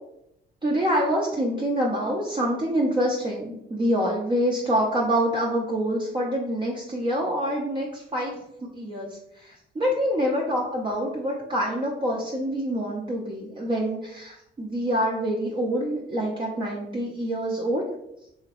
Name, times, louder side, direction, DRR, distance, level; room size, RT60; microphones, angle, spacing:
voice 1, 0.6-8.3 8.7-17.8, equal, 25° right, -3 dB, 0.5 m, -26 dB
2.9 x 2.8 x 2.9 m, 0.81 s
cardioid pair, 90°, 20 cm